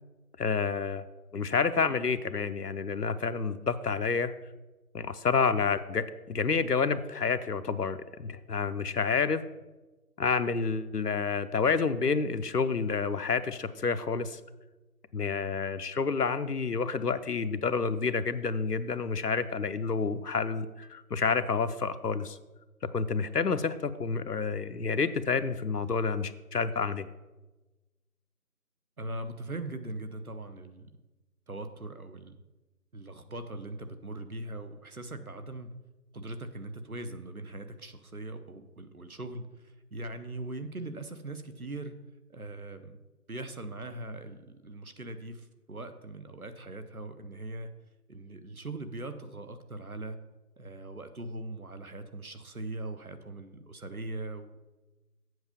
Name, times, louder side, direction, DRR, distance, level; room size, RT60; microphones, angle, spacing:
voice 1, 0.4-1.1 1.3-4.3 4.9-9.4 10.2-14.4 15.1-22.4 22.9-27.1, left 5 dB, 80° left, 12 dB, 0.7 m, -29 dB
voice 2, 29.0-30.9 31.5-32.4 32.9-35.7 36.1-41.9 42.3-43.0 43.3-47.7 48.1-50.2 50.6-54.6, right 2 dB, 65° right, 9 dB, 0.9 m, -40 dB
7.9 x 4.6 x 6.9 m, 1.1 s
figure-of-eight pair, 180°, 47 cm